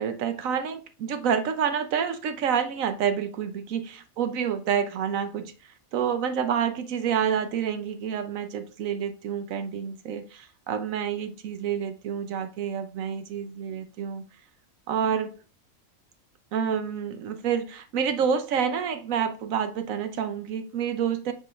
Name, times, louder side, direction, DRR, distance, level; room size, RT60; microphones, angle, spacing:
voice 1, 0.0-5.5 5.9-14.2 14.9-15.3 16.5-21.3, right 7 dB, 70° right, 1.1 m, -28 dB
8.0 x 4.7 x 3.1 m
omnidirectional pair, 1.6 m